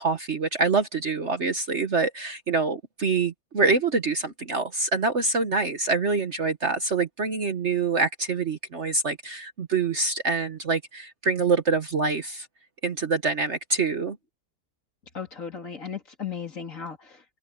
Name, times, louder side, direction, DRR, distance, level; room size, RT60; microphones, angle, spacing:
voice 1, 0.0-12.5 12.8-14.2, right 4 dB, 45° right, 1.3 m, -25 dB
voice 2, 15.1-17.2, left 7 dB, 45° left, 3.1 m, -36 dB
omnidirectional pair, 1.9 m